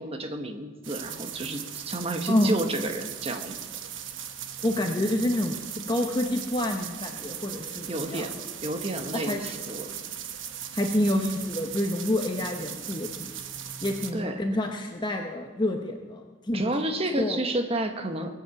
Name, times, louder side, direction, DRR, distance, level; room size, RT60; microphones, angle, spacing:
voice 1, 0.0-3.6 7.9-8.3 8.6-10.0 14.1-14.4 16.5-18.4, right 1 dB, 30° right, 6 dB, 1.2 m, -31 dB
sound 1, 0.8-14.1, right 9 dB, 70° right, 1.1 m, -38 dB
voice 2, 4.6-8.3 9.1-9.4 10.7-13.3 13.8-16.6 17.2-17.4, left 1 dB, 20° left, 3 dB, 0.8 m, -28 dB
21.0 x 8.1 x 7.2 m, 1.4 s
head